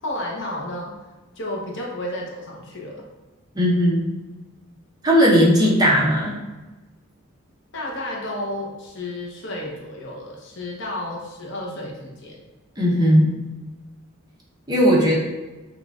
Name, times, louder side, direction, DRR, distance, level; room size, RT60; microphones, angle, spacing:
voice 1, 0.0-0.9 1.4-3.0 7.7-12.4, left 1 dB, 60° left, -2 dB, 0.8 m, -32 dB
voice 2, 3.5-4.1 5.0-6.4 12.8-13.4 14.7-15.2, equal, 20° right, -5 dB, 0.8 m, -17 dB
5.9 x 2.4 x 2.4 m, 1.2 s
head